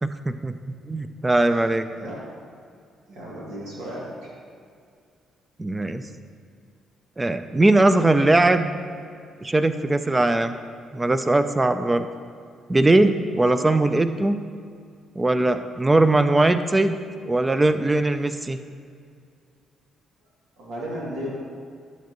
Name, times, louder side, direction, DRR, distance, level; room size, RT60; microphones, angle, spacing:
voice 1, 0.0-0.5 0.9-1.9 5.6-6.0 7.2-8.7 9.4-10.5 10.9-12.1 12.7-14.4 15.2-16.9 17.3-18.6, right 2 dB, 20° right, 10 dB, 0.5 m, -20 dB
voice 2, 3.1-4.3 13.4-13.6 20.6-21.3, equal, 85° right, -6 dB, 2.6 m, -34 dB
11.5 x 8.3 x 3.1 m, 2.3 s
cardioid pair, 90°, 0 cm